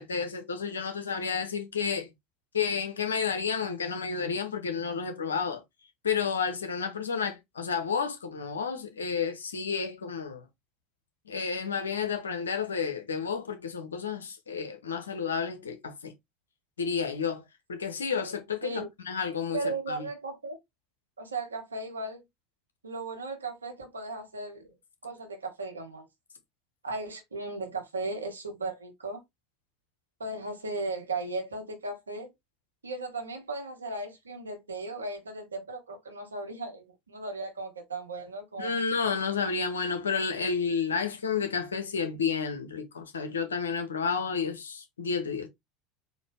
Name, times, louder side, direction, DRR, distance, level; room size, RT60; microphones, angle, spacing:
voice 1, 0.0-2.1 2.5-5.6 6.0-10.4 11.3-16.1 16.8-17.4 17.7-20.1 38.6-45.5, left 6 dB, 85° left, 0.9 m, -31 dB
voice 2, 19.5-20.6 21.2-22.2 22.8-24.7 25.0-26.0 26.8-29.2 30.2-32.3 32.8-38.8, right 3 dB, 90° right, 1.1 m, -36 dB
4.1 x 2.7 x 3.3 m
hypercardioid pair, 75°, 0 cm